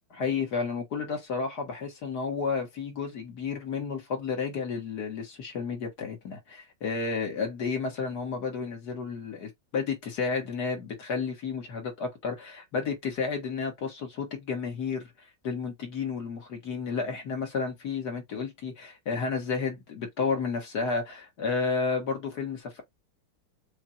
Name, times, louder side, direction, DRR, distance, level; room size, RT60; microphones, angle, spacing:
voice 1, 0.1-15.1 15.4-22.8, left 5 dB, 50° left, 2.1 m, -31 dB
7.2 x 2.6 x 2.5 m
omnidirectional pair, 2.3 m